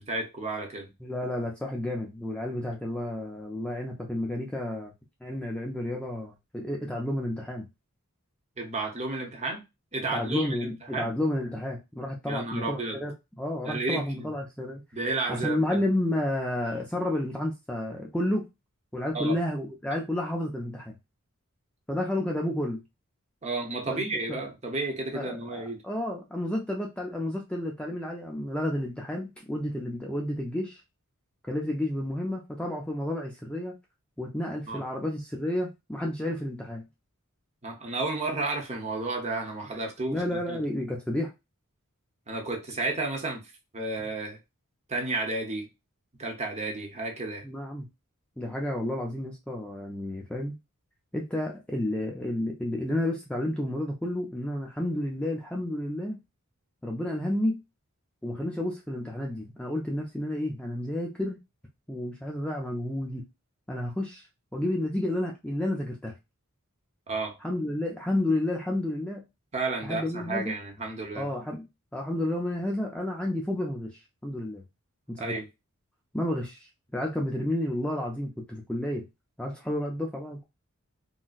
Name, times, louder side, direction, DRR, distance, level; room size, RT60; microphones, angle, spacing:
voice 1, 0.0-0.9 8.6-9.6 9.9-11.1 12.3-13.0 13.6-14.3 14.9-15.8 19.1-19.4 23.4-25.8 34.7-34.8 37.6-40.6 42.3-43.4 43.7-44.4 44.9-45.7 46.2-47.5 67.1-67.4 69.5-71.3 75.2-75.5, right 3 dB, 30° right, 0.8 m, -32 dB
voice 2, 1.0-4.9 5.2-7.7 10.1-13.1 13.4-14.8 15.3-18.5 18.9-21.0 21.9-22.8 23.9-24.0 24.3-24.4 25.1-30.8 31.5-33.8 34.2-36.8 40.1-41.3 47.4-47.9 48.4-50.6 51.1-56.2 56.8-57.6 58.2-61.4 61.9-63.2 63.7-64.3 64.5-66.1 67.4-69.2 69.8-70.5 71.2-71.7 71.9-74.6 75.1-75.4 76.1-79.1 79.4-80.4, left 1 dB, 5° left, 0.4 m, -31 dB
3.9 x 2.1 x 2.4 m
head